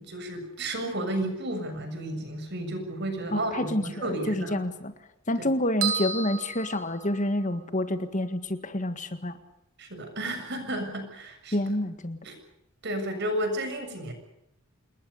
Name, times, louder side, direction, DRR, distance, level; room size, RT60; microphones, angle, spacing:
voice 1, 0.0-4.6 5.4-5.5 9.8-11.7 12.2-12.4 12.8-14.1, right 1 dB, 55° right, 7 dB, 7.1 m, -32 dB
voice 2, 3.3-4.9 5.3-9.3 11.5-12.2, left 1 dB, 35° left, 10 dB, 1.8 m, -28 dB
sound 1, 5.8-7.6, right 6 dB, 80° right, 5.4 m, -32 dB
28.0 x 21.0 x 6.7 m, 0.84 s
head